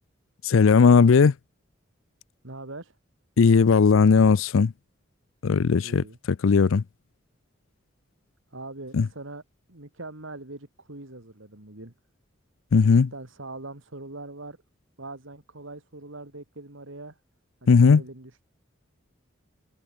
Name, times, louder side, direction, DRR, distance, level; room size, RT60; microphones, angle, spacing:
voice 1, 0.4-1.3 3.4-4.7 5.4-6.0 6.4-6.8 8.9-9.1 12.7-13.1 17.7-18.0, left 5 dB, 80° left, 0.5 m, -17 dB
voice 2, 2.4-2.9 5.8-6.2 8.5-9.4 9.7-11.9 12.8-14.6 15.0-17.2 17.6-18.4, right 2 dB, 75° right, 2.8 m, -42 dB
head